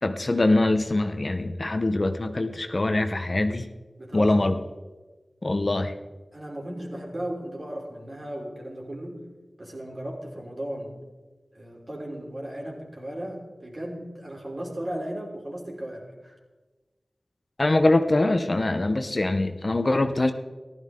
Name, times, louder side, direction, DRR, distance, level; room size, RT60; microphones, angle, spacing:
voice 1, 0.0-3.7 4.1-4.5 5.4-5.9 17.6-20.3, left 2 dB, 45° left, 8 dB, 0.8 m, -23 dB
voice 2, 4.0-4.5 5.5-6.0 6.3-9.3 9.6-11.0 11.5-16.4, right 1 dB, 40° right, -1 dB, 3.4 m, -36 dB
15.0 x 12.5 x 3.7 m, 1.2 s
wide cardioid pair, 80°, 0 cm